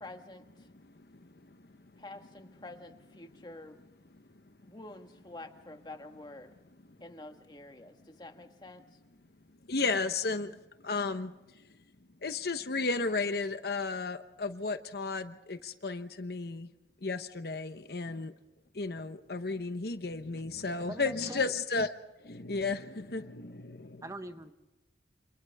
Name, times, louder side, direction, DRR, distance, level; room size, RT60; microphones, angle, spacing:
voice 1, 0.0-0.7 2.0-3.8 4.6-6.5 7.0-8.8, left 2 dB, 25° left, 6 dB, 1.5 m, -48 dB
voice 2, 0.8-1.7 1.9-2.0 9.7-11.3 12.2-16.7 17.0-18.3 18.7-21.9 22.2-24.0, left 3 dB, 60° left, 10 dB, 0.9 m, -34 dB
voice 3, 20.7-21.5 24.0-24.5, right 1 dB, 20° right, 8 dB, 1.0 m, -43 dB
28.0 x 27.0 x 3.5 m, 1.0 s
head